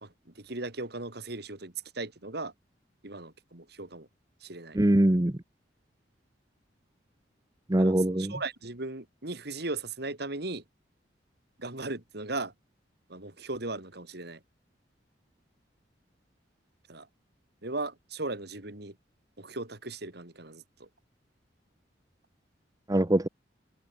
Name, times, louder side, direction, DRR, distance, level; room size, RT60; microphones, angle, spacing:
voice 1, 0.0-2.5 3.0-4.1 4.4-4.8 7.8-10.6 11.6-12.5 13.1-14.4 16.9-17.1 17.6-19.0 19.4-20.9, right 2 dB, 60° right, 2.7 m, -37 dB
voice 2, 4.7-5.4 7.7-8.3 22.9-23.3, right 1 dB, 20° right, 0.8 m, -23 dB
head